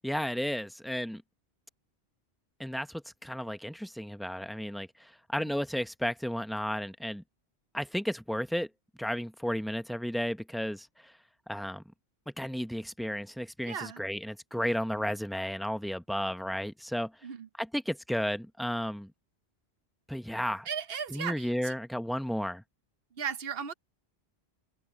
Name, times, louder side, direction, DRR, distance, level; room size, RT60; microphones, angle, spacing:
voice 1, 0.0-1.2 2.6-7.2 7.7-8.7 9.0-11.1 11.5-11.8 12.4-17.1 17.6-19.1 20.1-20.7 21.1-22.6, equal, ahead, 0.6 m, -33 dB
voice 2, 13.6-14.0 17.2-17.5 20.7-21.7 23.2-23.7, right 7 dB, 60° right, 1.1 m, -36 dB
omnidirectional pair, 1.1 m